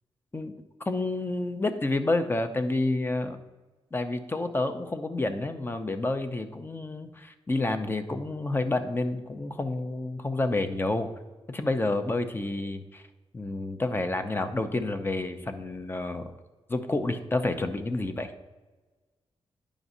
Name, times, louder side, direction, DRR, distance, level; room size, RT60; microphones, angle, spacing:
voice 1, 0.9-3.4 3.9-11.1 11.5-13.0 13.3-16.3 16.7-18.3, left 2 dB, 20° left, 8 dB, 0.6 m, -29 dB
11.0 x 5.0 x 2.7 m, 1.2 s
cardioid pair, 95°, 10 cm